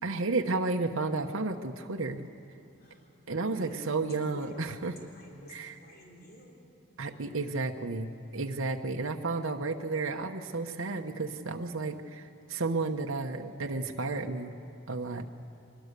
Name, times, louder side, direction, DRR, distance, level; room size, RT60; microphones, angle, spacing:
voice 1, 0.0-2.3 3.3-4.9 5.5-5.8 7.0-14.5 14.9-15.3, right 3 dB, 80° right, 3 dB, 1.0 m, -32 dB
voice 2, 2.8-3.9 4.3-4.8 5.1-6.6, equal, 45° left, -1 dB, 3.5 m, -50 dB
23.0 x 21.0 x 6.8 m, 2.8 s
head